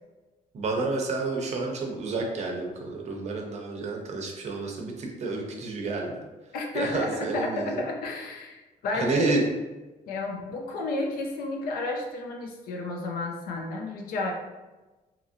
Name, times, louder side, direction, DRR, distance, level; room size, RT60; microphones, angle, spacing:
voice 1, 0.5-6.2 6.7-7.9 8.9-9.5, right 3 dB, 50° right, 1 dB, 0.6 m, -30 dB
voice 2, 6.5-9.3 10.1-14.3, left 2 dB, 85° left, 2 dB, 0.6 m, -31 dB
2.9 x 2.7 x 2.4 m, 1.1 s
cardioid pair, 130°, 15 cm